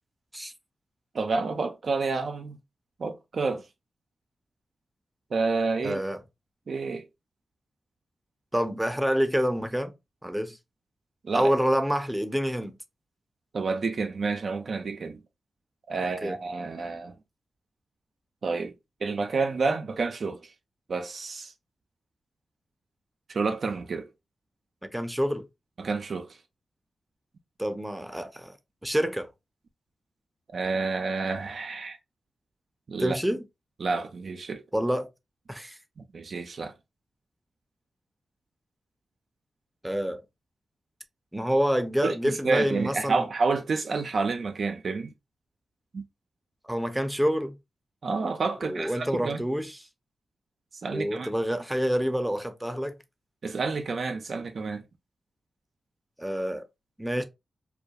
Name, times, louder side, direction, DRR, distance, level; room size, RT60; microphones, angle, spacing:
voice 1, 1.1-2.6 3.0-3.6 5.3-6.0 6.7-7.0 11.2-11.5 13.5-15.2 15.9-17.1 18.4-18.7 19.0-20.4 20.9-21.5 23.3-24.1 25.8-26.4 30.5-32.0 32.9-33.2 33.8-34.6 36.0-36.7 42.0-45.1 45.9-46.0 48.0-49.4 50.8-51.3 53.4-54.8, right 4 dB, 65° right, 0.4 m, -29 dB
voice 2, 5.8-6.2 8.5-9.9 10.2-10.6 11.3-12.7 16.2-16.4 24.9-25.4 27.6-28.5 28.8-29.3 33.0-33.4 34.7-35.1 35.5-35.8 39.8-40.2 41.3-43.3 46.7-47.6 48.6-49.8 50.9-52.9 56.2-56.7 57.0-57.2, equal, 10° right, 0.6 m, -27 dB
2.3 x 2.2 x 2.7 m
cardioid pair, 45°, 0 cm